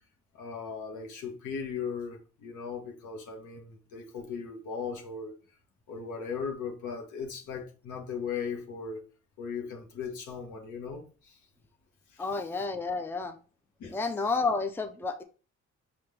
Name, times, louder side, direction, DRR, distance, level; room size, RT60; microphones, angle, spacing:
voice 1, 0.3-5.3 5.9-9.1 9.4-11.4 12.1-12.3 13.8-14.3, left 6 dB, 80° left, 1.3 m, -38 dB
voice 2, 12.2-13.4 13.9-15.2, left 4 dB, 5° left, 0.5 m, -30 dB
5.6 x 2.9 x 3.3 m
cardioid pair, 90°, 30 cm